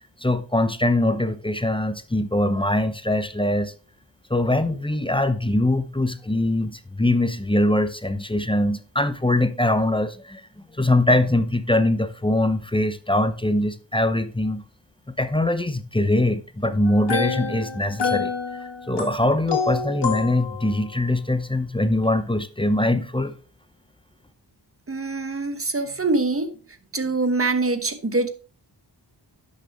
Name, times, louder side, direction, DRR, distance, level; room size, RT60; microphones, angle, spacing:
voice 1, 0.0-3.7 4.3-10.4 10.7-14.6 15.1-18.3 18.6-23.3, left 1 dB, 10° left, 0.7 m, -22 dB
sound 1, 16.9-20.8, left 5 dB, 75° left, 2.2 m, -28 dB
voice 2, 24.9-26.5 26.9-28.3, right 3 dB, 30° right, 1.3 m, -24 dB
10.5 x 6.5 x 3.5 m
cardioid pair, 60°, 42 cm